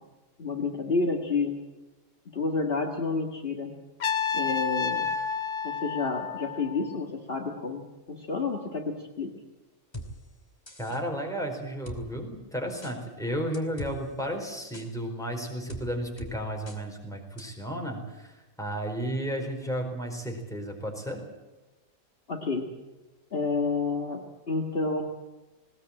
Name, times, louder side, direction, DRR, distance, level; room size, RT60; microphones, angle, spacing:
voice 1, 0.4-1.5 2.3-3.7 4.3-5.1 5.6-9.3 22.3-22.7 23.3-25.0, left 4 dB, 45° left, 1 dB, 1.9 m, -29 dB
Trumpet, 4.0-7.0, left 6 dB, 65° left, 1.5 m, -30 dB
sound 1, 9.9-10.1 10.7-11.0 11.9-12.0 12.8-12.9 13.5-13.9 14.7-14.9 15.7-15.8 16.2-16.3 16.7-16.8 17.4-17.5, left 1 dB, 20° left, 2.6 m, -39 dB
voice 2, 10.8-21.2, equal, ahead, 1 dB, 4.5 m, -33 dB
20.0 x 18.5 x 8.7 m, 1.1 s
omnidirectional pair, 1.4 m